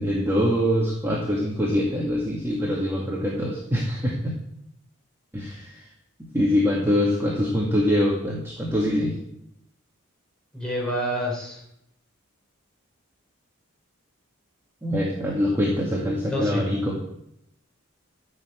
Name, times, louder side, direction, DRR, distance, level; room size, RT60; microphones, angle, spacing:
voice 1, 0.0-4.4 5.3-5.9 6.3-9.2 14.8-17.0, equal, 10° right, -3 dB, 2.0 m, -24 dB
voice 2, 10.5-11.6 16.2-16.7, equal, 5° left, -5 dB, 5.7 m, -28 dB
14.0 x 6.9 x 8.2 m, 0.78 s
head